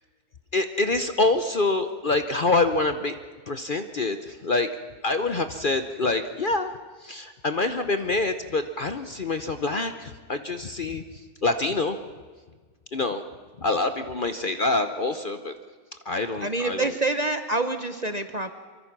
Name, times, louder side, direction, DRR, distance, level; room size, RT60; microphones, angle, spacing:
voice 1, 0.5-3.1 3.5-4.7 5.0-6.7 7.0-11.0 11.4-12.0 12.9-13.2 13.6-15.5 16.0-16.9, left 3 dB, 45° left, 8 dB, 0.8 m, -26 dB
voice 2, 16.4-18.5, right 2 dB, 35° right, 8 dB, 0.8 m, -27 dB
24.5 x 24.0 x 6.0 m, 1.5 s
omnidirectional pair, 1.6 m